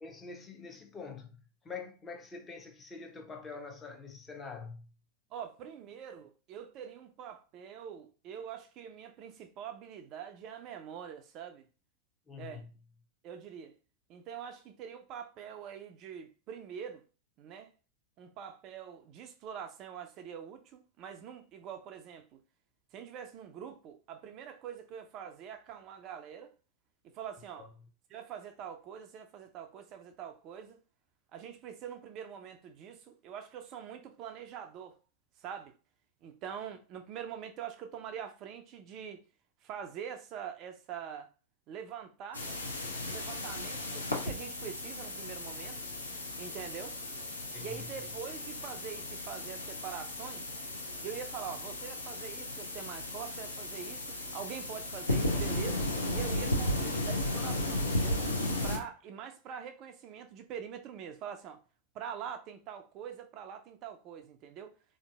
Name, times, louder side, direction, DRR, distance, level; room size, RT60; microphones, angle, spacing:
voice 1, 0.0-4.8 12.3-12.7 27.6-27.7 47.5-47.9, left 5 dB, 15° left, 0.6 m, -45 dB
voice 2, 5.3-11.7 12.4-12.7 13.2-13.7 14.1-17.0 17.4-17.7 18.2-22.4 22.9-26.5 27.0-27.7 28.1-30.8 31.3-35.0 35.4-35.7 36.2-39.2 39.6-41.3 41.7-42.4 43.1-45.8 46.4-47.0 47.6-50.5 51.0-58.2 58.6-61.6 61.9-64.7, right 8 dB, 35° right, 0.3 m, -44 dB
sound 1, 42.3-58.8, left 1 dB, 80° left, 0.6 m, -35 dB
3.7 x 2.6 x 2.3 m
figure-of-eight pair, 90°, 0 cm